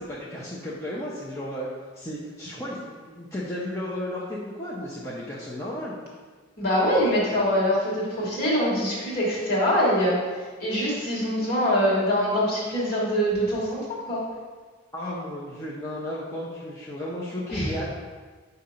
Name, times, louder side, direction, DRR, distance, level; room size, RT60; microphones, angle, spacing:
voice 1, 0.0-1.7 1.9-6.0 14.9-17.9, left 1 dB, 15° left, -7 dB, 0.6 m, -34 dB
voice 2, 6.6-10.2 10.6-14.2 17.5-17.7, equal, 50° left, -6 dB, 1.8 m, -24 dB
6.9 x 2.8 x 5.1 m, 1.4 s
head